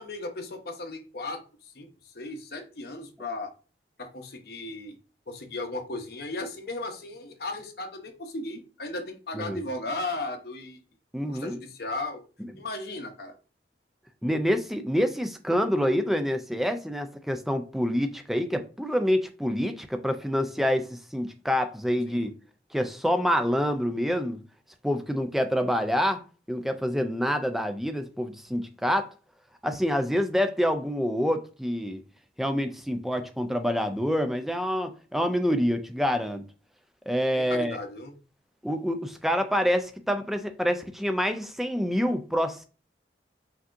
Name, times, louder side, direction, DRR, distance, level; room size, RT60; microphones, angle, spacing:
voice 1, 0.0-3.5 4.0-5.0 5.3-10.8 11.3-12.2 12.6-13.4 22.1-22.3 37.3-38.2, left 2 dB, 55° left, 0.8 m, -36 dB
voice 2, 11.1-11.6 14.2-22.3 22.7-24.4 24.8-26.2 26.5-29.1 29.6-32.0 32.4-36.4 37.1-37.8 38.6-42.6, equal, ahead, 0.3 m, -27 dB
5.8 x 2.7 x 2.5 m
head